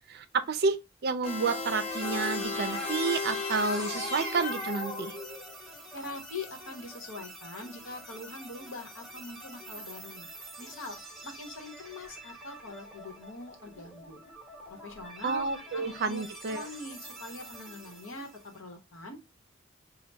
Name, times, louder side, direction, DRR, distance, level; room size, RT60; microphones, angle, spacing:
voice 1, 0.1-0.8 1.0-5.1 15.2-16.7, right 4 dB, 50° right, 0.5 m, -30 dB
sound 1, 1.2-5.6, left 3 dB, 30° left, 1.1 m, -34 dB
sound 2, 1.7-18.6, right 2 dB, ahead, 1.0 m, -47 dB
voice 2, 5.9-10.3 10.6-11.0 11.2-14.2 14.7-15.5 15.7-19.2, left 2 dB, 80° left, 1.1 m, -43 dB
5.3 x 2.2 x 3.4 m
head